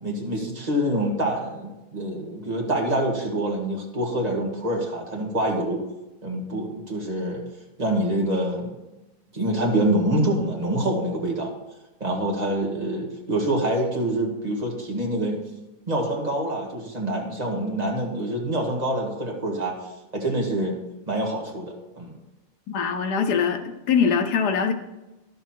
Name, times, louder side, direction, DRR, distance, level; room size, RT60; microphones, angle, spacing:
voice 1, 0.0-5.8 6.2-7.4 7.8-8.8 9.3-11.5 12.0-15.4 15.9-19.7 20.1-20.8 21.1-22.1, right 1 dB, 25° right, -1 dB, 1.9 m, -26 dB
voice 2, 22.7-24.7, left 6 dB, 80° left, 7 dB, 1.5 m, -23 dB
11.5 x 7.1 x 4.5 m, 1.0 s
omnidirectional pair, 1.7 m